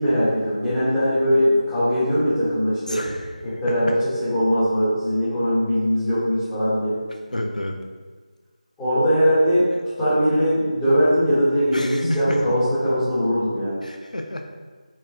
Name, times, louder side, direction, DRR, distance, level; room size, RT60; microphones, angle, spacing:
voice 1, 0.0-3.0 3.4-6.9 8.8-9.7 10.0-13.7, equal, 5° left, -13 dB, 1.1 m, -20 dB
voice 2, 2.9-3.6 7.3-7.8 11.7-12.4 13.8-14.5, left 1 dB, 75° left, 4 dB, 0.5 m, -30 dB
4.5 x 3.8 x 2.8 m, 1.5 s
figure-of-eight pair, 165°, 4 cm